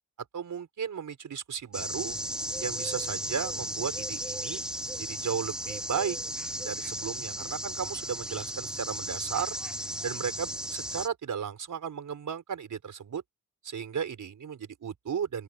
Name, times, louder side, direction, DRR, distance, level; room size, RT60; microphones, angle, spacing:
voice 1, 0.3-2.2 2.6-4.6 5.0-6.2 6.6-9.6 10.0-13.2 13.6-15.4, right 7 dB, 60° right, 5.3 m, -35 dB
sound 1, 1.7-11.1, equal, ahead, 0.6 m, -35 dB
open air
wide cardioid pair, 140°, 34 cm